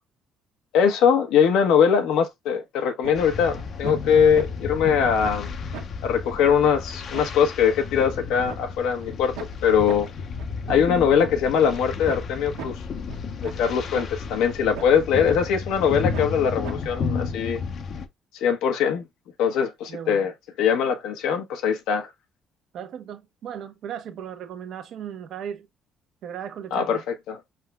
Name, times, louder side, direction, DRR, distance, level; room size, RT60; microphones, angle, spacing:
voice 1, 0.7-5.5 6.0-10.1 10.7-12.8 13.4-17.6 18.4-19.1 19.4-20.3 20.6-22.1 26.7-27.0 27.3-27.4, left 7 dB, 85° left, 1.0 m, -21 dB
sound 1, 3.0-3.1 3.5-3.9 4.3-4.4 4.9-5.0 5.2-5.4 5.7-5.8 6.2-6.3 6.6-6.7 7.1-7.2 7.6-8.6 9.0-9.1 9.4-9.5 9.9-10.0 10.4-11.3 11.7-11.8 12.1-12.2 12.6-12.7 13.1-13.2 13.4-13.6 13.9-14.1 14.5-15.0 15.3-15.4 15.8-15.9 16.1-16.3 16.6-16.7 17.1-17.2, right 8 dB, 90° right, 1.3 m, -37 dB
sound 2, 3.1-18.1, left 5 dB, 45° left, 0.7 m, -33 dB
voice 2, 19.9-20.3 22.7-25.7 26.2-27.0, right 8 dB, 60° right, 0.9 m, -36 dB
5.7 x 3.6 x 2.2 m
cardioid pair, 135°, 0 cm